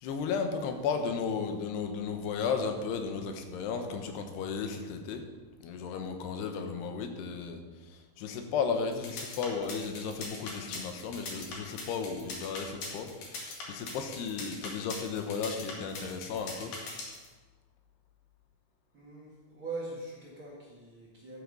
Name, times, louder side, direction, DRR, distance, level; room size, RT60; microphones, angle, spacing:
voice 1, 0.0-5.2 5.6-7.6 8.2-13.1 13.4-16.7, left 5 dB, 85° left, 6 dB, 3.1 m, -34 dB
sound 1, 8.9-17.3, left 3 dB, 60° left, 3.4 m, -40 dB
voice 2, 18.9-21.4, right 3 dB, 45° right, -5 dB, 1.9 m, -42 dB
12.5 x 8.4 x 5.4 m, 1.3 s
omnidirectional pair, 4.7 m